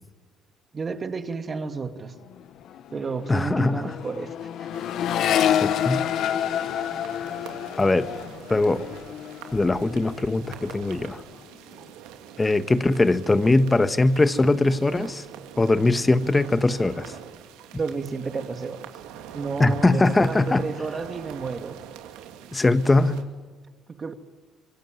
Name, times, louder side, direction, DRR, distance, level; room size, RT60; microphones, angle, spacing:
voice 1, 0.7-2.1 2.9-4.3 4.6-4.7 17.7-18.8 19.3-21.8 24.0-24.1, right 4 dB, 35° right, 2.4 m, -31 dB
Accelerating revving vroom, 2.2-2.4 2.7-10.2 10.5-11.1, left 10 dB, 65° left, 1.3 m, -28 dB
voice 2, 3.3-3.9 5.6-6.0 7.8-8.1 8.5-8.9 9.5-11.2 12.4-15.2 15.6-17.1 19.6-20.6 22.5-23.2, left 2 dB, 20° left, 1.4 m, -21 dB
sound 1, 4.7-23.2, right 9 dB, 90° right, 2.8 m, -44 dB
25.5 x 23.5 x 9.4 m
cardioid pair, 90°, 0 cm